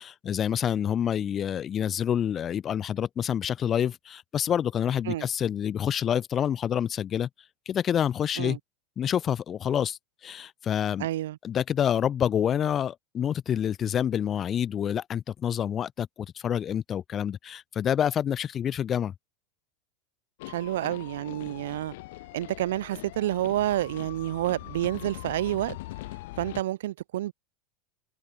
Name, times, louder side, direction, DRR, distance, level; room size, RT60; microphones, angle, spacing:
voice 1, 0.0-7.3 7.7-8.6 9.0-11.1 11.4-19.1, left 9 dB, 25° left, 2.0 m, -27 dB
voice 2, 11.0-11.4 20.5-21.9 22.3-25.8 26.4-27.3, right 14 dB, 85° right, 2.2 m, -29 dB
sound 1, 20.4-26.6, left 19 dB, 65° left, 1.3 m, -42 dB
supercardioid pair, 150°, 0 cm